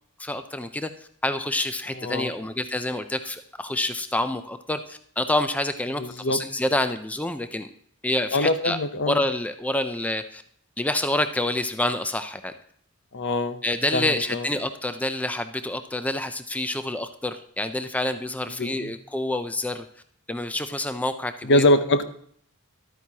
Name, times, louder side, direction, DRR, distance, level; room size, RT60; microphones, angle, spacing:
voice 1, 0.2-0.9 1.2-7.7 8.0-8.8 9.1-10.4 10.8-12.5 13.6-19.9 20.3-21.6, left 1 dB, 5° left, 9 dB, 0.4 m, -27 dB
voice 2, 2.0-2.3 6.0-6.4 8.3-9.2 13.1-13.6 13.9-14.5 18.6-18.9 21.4-22.0, left 1 dB, 55° left, 10 dB, 0.7 m, -23 dB
12.0 x 9.2 x 2.8 m, 0.63 s
head